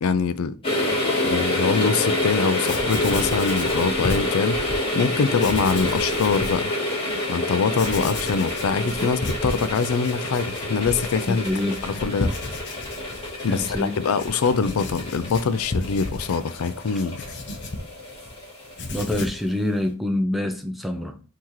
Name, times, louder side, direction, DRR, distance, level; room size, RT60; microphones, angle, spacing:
voice 1, 0.0-0.9 1.2-6.7 7.3-11.4 11.8-12.3 13.4-17.2, left 5 dB, 80° left, 0.4 m, -24 dB
sound 1, 0.6-19.3 19.6-19.7, left 1 dB, 25° left, 2.1 m, -28 dB
sound 2, 1.7-2.4 2.7-4.3 4.7-6.3 6.7-8.3 8.5-10.1 10.4-11.0, right 1 dB, 20° right, 1.4 m, -41 dB
Writing, 2.3-2.4 2.6-4.8 5.3-6.6 7.1-7.2 7.7-18.3 18.6-19.5, left 2 dB, 55° left, 0.8 m, -34 dB
voice 2, 11.3-11.8 13.5-13.9 18.9-21.2, left 1 dB, ahead, 0.4 m, -26 dB
5.7 x 2.9 x 3.1 m
head